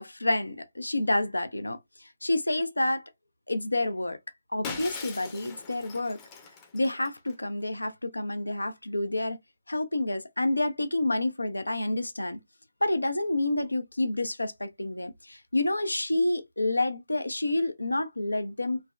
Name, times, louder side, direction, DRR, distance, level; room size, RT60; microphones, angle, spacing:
voice 1, 0.0-1.8 2.2-3.0 3.5-4.2 4.5-6.2 6.7-9.4 9.7-12.4 12.8-18.8, left 2 dB, 85° left, 0.5 m, -28 dB
Shatter, 4.6-7.3, left 5 dB, 20° left, 0.6 m, -41 dB
3.4 x 2.1 x 2.3 m
figure-of-eight pair, 150°, 0 cm